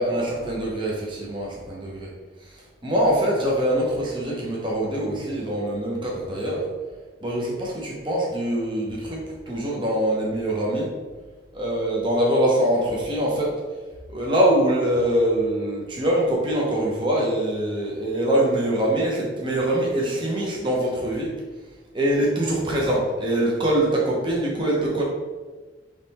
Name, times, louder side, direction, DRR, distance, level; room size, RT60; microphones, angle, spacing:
voice 1, 0.0-2.1 2.5-6.6 7.2-9.2 9.5-10.9 11.5-13.5 14.1-21.3 21.9-25.0, right 1 dB, 25° right, -4 dB, 0.8 m, -23 dB
3.7 x 3.2 x 4.1 m, 1.3 s
head